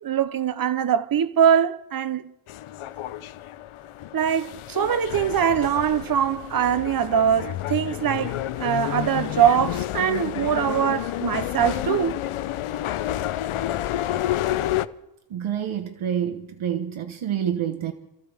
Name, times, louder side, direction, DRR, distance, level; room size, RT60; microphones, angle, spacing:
voice 1, 0.0-2.2 4.1-12.2, right 8 dB, 45° right, 0.8 m, -22 dB
sound 1, 2.5-14.9, left 13 dB, 85° left, 0.7 m, -30 dB
voice 2, 15.3-17.9, right 9 dB, 70° right, 1.2 m, -27 dB
27.5 x 15.0 x 3.4 m
cardioid pair, 95°, 49 cm